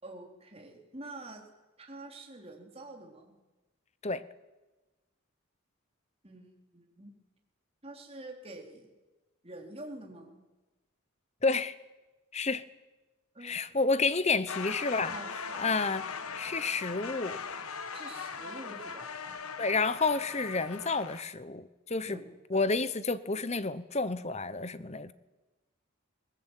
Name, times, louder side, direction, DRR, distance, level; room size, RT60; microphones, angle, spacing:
voice 1, 0.0-1.4 1.8-3.3 6.2-7.1 7.8-8.9 9.4-10.4 13.3-13.8 15.0-15.8 17.9-19.1 22.0-22.7, right 2 dB, 25° right, 2 dB, 4.0 m, -47 dB
voice 2, 11.4-11.8 12.3-12.6 13.4-15.1 15.6-16.1 16.3-17.4 19.6-22.2 22.5-25.1, left 3 dB, 30° left, 15 dB, 1.0 m, -30 dB
sound 1, 14.5-21.2, left 5 dB, 85° left, 1.5 m, -40 dB
21.5 x 20.0 x 9.2 m, 1.2 s
head